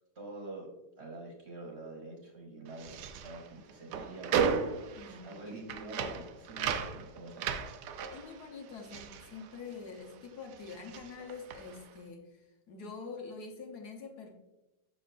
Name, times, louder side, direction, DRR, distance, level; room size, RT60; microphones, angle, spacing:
voice 1, 0.1-0.7 1.0-2.9 3.2-4.7 5.0-7.5, right 2 dB, 40° right, -1 dB, 1.4 m, -46 dB
sound 1, 2.7-10.2 10.4-11.9, right 7 dB, 80° right, 1.2 m, -36 dB
voice 2, 4.9-5.4 8.1-14.3, left 4 dB, 70° left, 2 dB, 1.4 m, -45 dB
6.4 x 6.0 x 2.5 m, 0.99 s
omnidirectional pair, 1.8 m